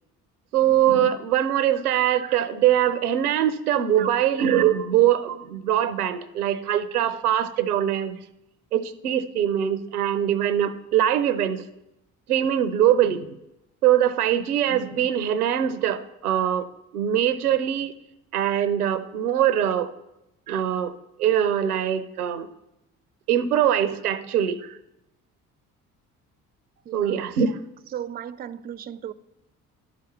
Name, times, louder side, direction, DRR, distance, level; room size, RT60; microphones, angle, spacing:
voice 1, 0.5-8.2 8.7-11.6 12.3-13.4 13.8-16.7 16.9-17.9 18.3-19.9 20.5-20.9 21.2-22.5 23.3-24.8 26.9-27.6, right 10 dB, 85° right, 14 dB, 0.5 m, -22 dB
voice 2, 27.9-29.1, right 9 dB, 20° right, 17 dB, 0.4 m, -35 dB
11.0 x 4.9 x 6.9 m, 0.89 s
figure-of-eight pair, 50°, 44 cm